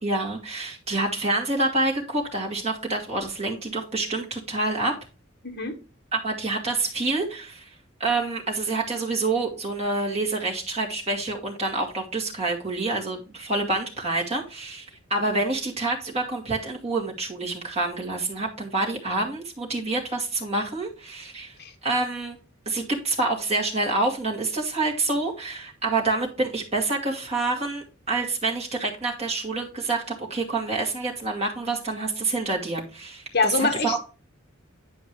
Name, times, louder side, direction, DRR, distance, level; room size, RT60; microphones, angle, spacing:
voice 1, 0.0-4.9 6.1-7.7 8.0-21.5 21.8-22.4 22.7-34.0, right 2 dB, 30° right, -2 dB, 2.4 m, -27 dB
voice 2, 5.4-5.7 21.6-21.7 33.3-34.0, left 4 dB, 50° left, 4 dB, 1.3 m, -24 dB
10.5 x 5.1 x 3.2 m, 0.33 s
head